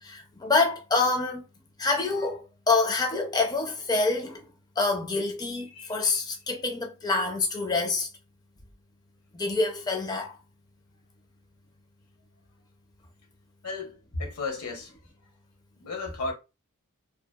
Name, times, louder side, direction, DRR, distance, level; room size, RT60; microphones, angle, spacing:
voice 1, 0.0-1.4 1.8-4.4 4.8-8.1 9.3-10.4, left 3 dB, 20° left, 0.4 m, -26 dB
voice 2, 13.6-14.9 15.8-16.3, left 3 dB, 75° left, 0.8 m, -34 dB
2.6 x 2.3 x 2.2 m
head